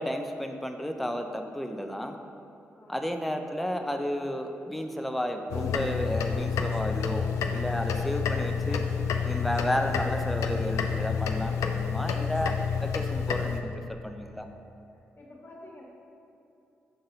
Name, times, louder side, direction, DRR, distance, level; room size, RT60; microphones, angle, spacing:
voice 1, 0.0-2.2 2.9-8.8 9.2-12.5 12.8-14.5, equal, ahead, 4 dB, 0.5 m, -32 dB
voice 2, 2.7-3.1 15.2-15.8, left 1 dB, 45° left, -3 dB, 1.5 m, -49 dB
Pendel-Uhr, 5.5-13.6, left 6 dB, 85° left, 0.3 m, -29 dB
7.1 x 3.9 x 3.9 m, 2.7 s
supercardioid pair, 50°, 5 cm